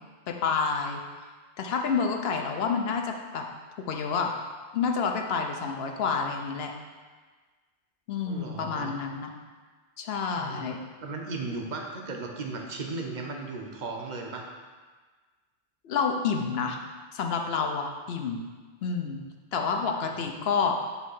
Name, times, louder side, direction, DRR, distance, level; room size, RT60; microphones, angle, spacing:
voice 1, 0.3-1.0 1.6-3.5 3.8-4.3 4.7-6.7 8.1-9.3 10.0-10.8 15.8-16.8 17.1-18.4 18.8-19.2 19.5-20.8, left 5 dB, 70° left, 3 dB, 0.9 m, -29 dB
voice 2, 8.2-9.0 10.3-10.7 11.0-14.5 20.0-20.3, right 3 dB, 50° right, 1 dB, 0.8 m, -36 dB
6.0 x 3.3 x 5.5 m, 1.4 s
omnidirectional pair, 1.1 m